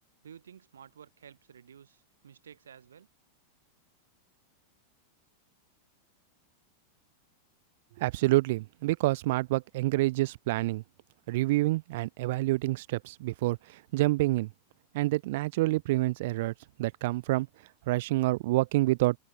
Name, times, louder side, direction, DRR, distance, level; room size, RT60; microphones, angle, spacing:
voice 1, 0.2-3.1, right 8 dB, 65° right, 3.5 m, -52 dB
voice 2, 8.0-10.8 11.3-14.5 14.9-16.5 16.8-17.5 17.9-19.2, right 19 dB, 50° right, 0.4 m, -27 dB
open air
figure-of-eight pair, 90°, 0 cm